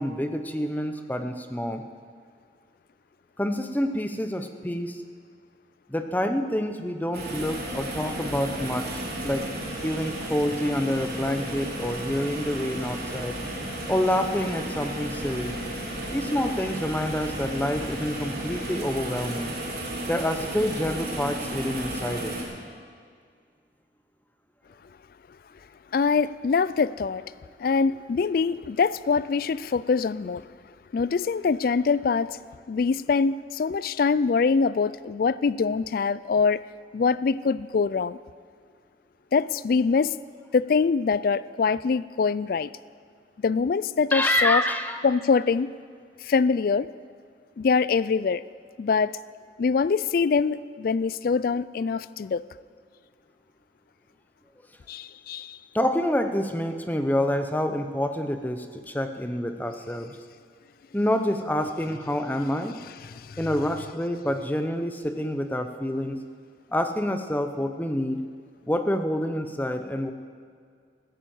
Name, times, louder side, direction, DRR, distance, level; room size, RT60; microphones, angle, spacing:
voice 1, 0.0-1.8 3.4-5.0 5.9-9.5 9.8-13.4 13.9-15.6 16.1-19.6 20.1-22.3 44.1-45.0 55.7-60.2 60.9-62.8 63.4-66.2 66.7-68.2 68.7-70.1, left 1 dB, 10° left, 7 dB, 0.7 m, -27 dB
sound 1, 7.1-22.4, right 1 dB, 55° right, 3.7 m, -33 dB
voice 2, 25.9-27.2 27.6-30.5 30.9-32.4 32.7-36.6 36.9-38.2 39.3-40.2 40.5-42.7 43.4-44.6 45.0-45.7 46.2-46.9 47.6-48.4 48.8-49.1 49.6-52.4 54.9-55.6 63.1-63.4, left 5 dB, 50° left, 18 dB, 0.3 m, -24 dB
15.0 x 10.0 x 7.8 m, 2.1 s
head